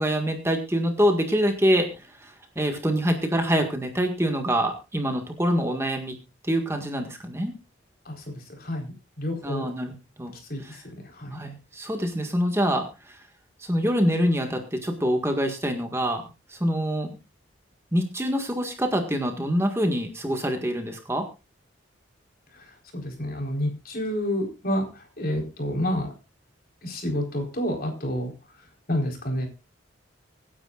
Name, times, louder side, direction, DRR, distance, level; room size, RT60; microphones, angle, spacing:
voice 1, 0.0-6.2 6.4-7.5 9.4-10.3 10.6-10.8 11.3-13.2 13.6-17.2 17.9-21.2, equal, 15° right, 4 dB, 1.7 m, -25 dB
voice 2, 8.6-9.7 10.5-10.6 11.2-11.4 22.9-24.8 25.2-26.1 26.8-28.3 28.9-29.5, equal, 45° left, 3 dB, 4.2 m, -28 dB
25.0 x 10.0 x 2.5 m, 0.28 s
head